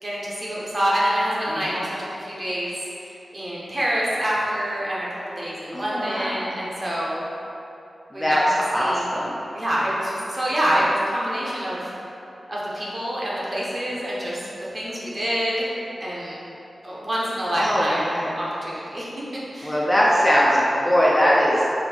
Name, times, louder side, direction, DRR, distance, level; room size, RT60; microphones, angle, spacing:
voice 1, 0.0-2.7 3.0-7.2 8.1-8.4 8.7-9.0 9.5-11.9 12.5-14.5 14.7-15.7 16.0-16.4 16.8-18.0 18.3-19.1 19.5-19.8, equal, 35° right, -7 dB, 0.9 m, -26 dB
voice 2, 1.5-1.8 5.7-6.5 8.1-8.4 8.7-9.4 17.5-18.4 19.6-21.6, equal, 10° left, -6 dB, 0.5 m, -21 dB
4.3 x 2.8 x 4.3 m, 2.9 s
wide cardioid pair, 135°, 0 cm